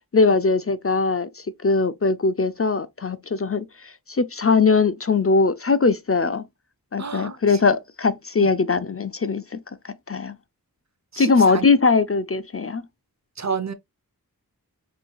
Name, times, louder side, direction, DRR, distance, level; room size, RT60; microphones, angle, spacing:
voice 1, 0.1-6.4 6.9-9.6 9.8-10.4 11.2-12.8, left 4 dB, 40° left, 0.5 m, -21 dB
voice 2, 7.0-7.6 8.4-8.5 11.1-11.7 13.4-13.7, right 5 dB, 45° right, 0.7 m, -30 dB
5.0 x 3.2 x 2.3 m
wide cardioid pair, 45°, 37 cm